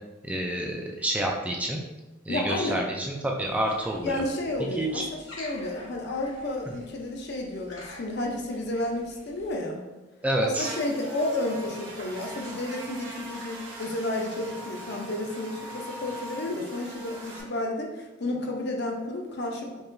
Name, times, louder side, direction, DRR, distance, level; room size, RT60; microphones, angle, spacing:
voice 1, 0.2-1.8 2.3-4.2 4.8-5.0 10.2-10.7, right 1 dB, 5° right, 0 dB, 0.3 m, -28 dB
voice 2, 2.3-2.9 4.0-9.8 10.4-19.8, left 1 dB, 60° left, 1 dB, 0.6 m, -31 dB
sound 1, 3.4-9.5, left 2 dB, 80° left, 1.1 m, -48 dB
Buzz, 10.6-17.4, right 1 dB, 80° right, 1.1 m, -41 dB
4.7 x 2.8 x 2.6 m, 1.1 s
head